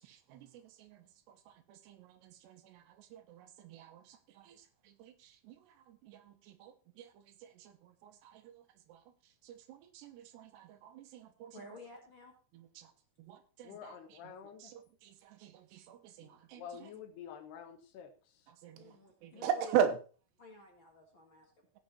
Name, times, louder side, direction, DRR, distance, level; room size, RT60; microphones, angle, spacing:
voice 1, 0.0-11.8 12.5-16.9 18.5-20.0, right 8 dB, 80° right, 9 dB, 3.1 m, -41 dB
voice 2, 11.5-12.3 18.7-19.6 20.4-21.7, left 2 dB, 40° left, 0 dB, 1.8 m, -53 dB
voice 3, 13.6-14.7 16.2-18.5, left 8 dB, 75° left, 7 dB, 3.2 m, -49 dB
17.0 x 6.1 x 4.2 m, 0.36 s
omnidirectional pair, 4.9 m